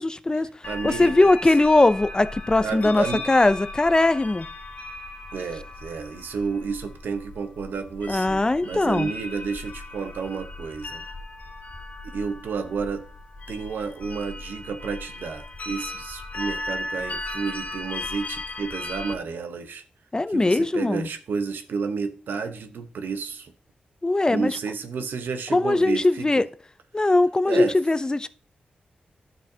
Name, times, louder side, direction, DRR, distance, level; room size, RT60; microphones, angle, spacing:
voice 1, 0.0-0.5 0.8-4.5 8.1-9.1 20.1-21.1 24.0-24.6 25.5-26.5 26.9-28.3, left 2 dB, 25° left, 0.5 m, -20 dB
sound 1, 0.6-19.1, left 2 dB, 50° left, 1.0 m, -37 dB
voice 2, 0.6-1.3 2.6-3.2 5.3-11.0 12.1-13.1 13.5-19.8 20.3-23.5 24.3-26.5 27.5-27.8, right 5 dB, 90° right, 0.8 m, -31 dB
10.0 x 6.5 x 2.7 m
cardioid pair, 70°, 3 cm